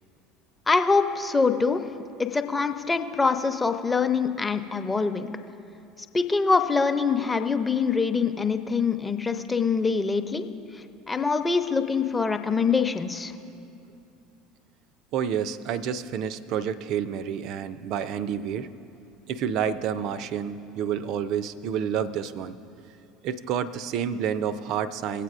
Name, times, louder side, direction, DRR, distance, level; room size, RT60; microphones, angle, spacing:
voice 1, 0.7-1.8 2.2-5.3 6.1-10.5 10.7-13.3, left 4 dB, 15° left, 8 dB, 0.7 m, -24 dB
voice 2, 15.1-18.7 19.3-22.6 23.2-25.2, right 8 dB, 50° right, 15 dB, 0.4 m, -29 dB
22.0 x 8.3 x 2.5 m, 2.7 s
figure-of-eight pair, 65°, 0 cm